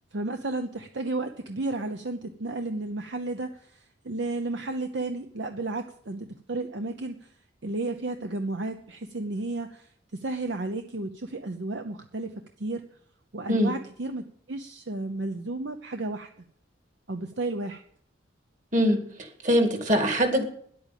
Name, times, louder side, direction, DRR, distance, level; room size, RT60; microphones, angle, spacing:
voice 1, 0.1-7.3 7.6-12.8 13.3-16.3 17.1-17.8, right 2 dB, 65° right, 0.8 m, -33 dB
voice 2, 18.7-20.4, equal, 40° right, 2.2 m, -23 dB
10.5 x 8.7 x 9.1 m
head